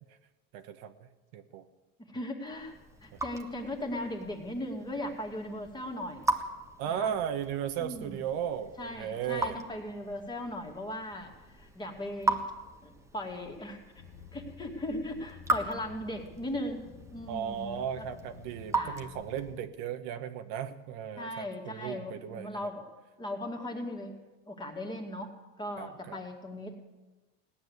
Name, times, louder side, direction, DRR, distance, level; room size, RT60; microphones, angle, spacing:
voice 1, 0.5-0.9 1.3-1.6 6.8-9.6 17.3-22.5 25.8-26.2, right 9 dB, 65° right, 8 dB, 1.2 m, -36 dB
voice 2, 2.1-2.7 3.0-6.3 6.8-7.1 7.8-8.2 8.8-12.5 12.8-14.0 14.3-16.8 17.1-18.1 18.7-19.0 21.2-22.9 23.2-24.2 24.5-26.8, left 1 dB, 15° left, 2 dB, 2.3 m, -38 dB
Raindrop / Drip, 2.5-19.6, right 2 dB, 10° right, 1.3 m, -38 dB
sound 1, 14.0-19.5, left 7 dB, 50° left, 1.2 m, -52 dB
18.0 x 10.0 x 8.0 m, 1.1 s
supercardioid pair, 135°, 32 cm